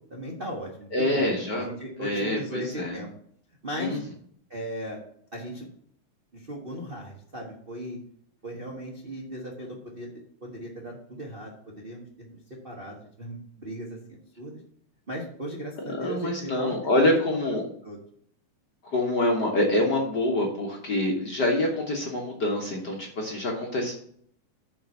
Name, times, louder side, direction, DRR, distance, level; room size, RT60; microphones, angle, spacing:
voice 1, 0.1-3.1 3.6-4.0 4.5-5.0 5.3-5.7 6.3-8.0 8.4-10.1 10.4-14.6 15.1-16.7 17.0-17.6 17.8-18.0, right 1 dB, 85° right, -2 dB, 0.5 m, -37 dB
voice 2, 0.9-1.6 2.0-3.0 3.8-4.0 16.0-17.6 18.9-23.9, left 1 dB, 55° left, 0 dB, 1.2 m, -26 dB
7.5 x 4.6 x 6.9 m, 0.64 s
omnidirectional pair, 3.7 m